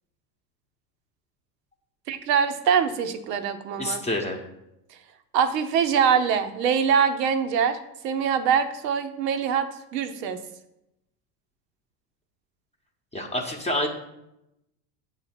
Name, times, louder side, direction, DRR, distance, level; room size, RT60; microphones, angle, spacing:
voice 1, 2.1-4.0 5.3-7.8 8.0-10.4, right 7 dB, 80° right, 9 dB, 0.8 m, -23 dB
voice 2, 3.8-4.4 13.1-13.9, left 1 dB, 15° left, 1 dB, 0.8 m, -27 dB
8.0 x 2.8 x 5.8 m, 0.86 s
hypercardioid pair, 95°, 48 cm